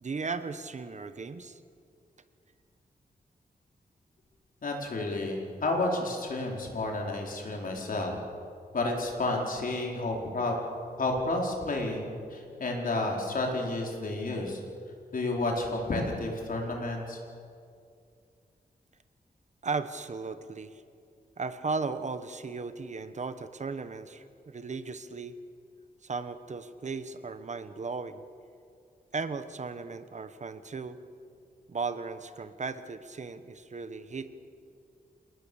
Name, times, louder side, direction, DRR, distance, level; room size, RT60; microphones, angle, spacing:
voice 1, 0.0-1.6 19.6-20.8 21.4-25.4 26.0-28.2 29.1-31.0 31.7-34.3, right 4 dB, 45° right, 11 dB, 1.1 m, -36 dB
voice 2, 4.6-8.2 8.7-10.5 11.0-14.6 15.1-17.2, left 2 dB, 60° left, 0 dB, 4.6 m, -31 dB
28.0 x 19.0 x 7.1 m, 2.4 s
wide cardioid pair, 120°, 16 cm